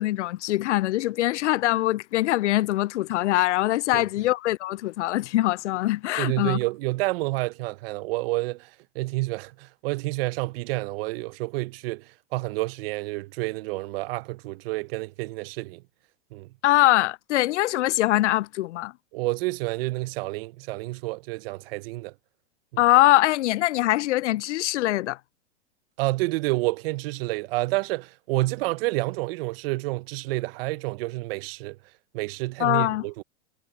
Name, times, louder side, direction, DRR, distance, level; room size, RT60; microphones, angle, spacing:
voice 1, 0.0-6.6 16.6-18.9 22.8-25.2 32.6-33.0, left 16 dB, 70° left, 0.5 m, -23 dB
voice 2, 6.2-15.8 16.3-16.5 19.1-22.1 26.0-31.8 32.1-33.2, right 21 dB, 50° right, 0.9 m, -29 dB
hypercardioid pair, 115°, 36 cm